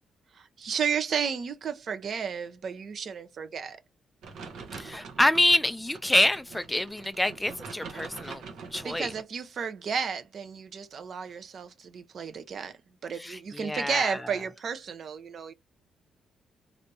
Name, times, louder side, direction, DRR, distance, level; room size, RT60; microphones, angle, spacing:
voice 1, 0.6-3.8 8.2-8.3 8.8-12.7 13.0-15.5, right 6 dB, 60° right, 0.7 m, -32 dB
sound 1, 4.2-9.2, right 5 dB, 80° right, 1.0 m, -44 dB
voice 2, 4.7-8.4 8.7-9.1 13.1-14.4, left 1 dB, 10° left, 0.4 m, -26 dB
3.4 x 2.6 x 2.7 m
cardioid pair, 75°, 0 cm